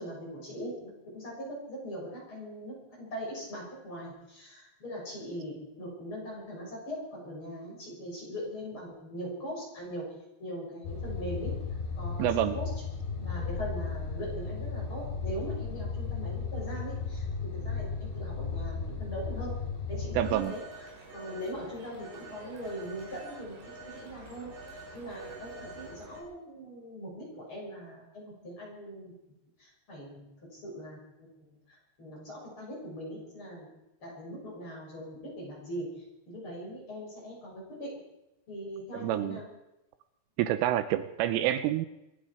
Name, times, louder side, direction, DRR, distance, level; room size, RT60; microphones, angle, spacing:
voice 1, 0.0-10.1 10.4-11.5 12.0-12.7 13.2-19.5 19.9-20.6 21.1-29.1 29.6-33.7 34.0-38.0 38.5-39.5, equal, 25° left, -4 dB, 7.2 m, -41 dB
sound 1, 10.8-20.4, left 4 dB, 60° left, 6.0 m, -35 dB
voice 2, 12.2-12.6 20.1-20.6 38.9-39.4 40.4-41.9, right 12 dB, 85° right, 11 dB, 3.2 m, -28 dB
Telephone, 20.2-26.2, right 2 dB, 55° right, 6.2 m, -47 dB
25.5 x 11.0 x 5.1 m, 0.91 s
omnidirectional pair, 5.8 m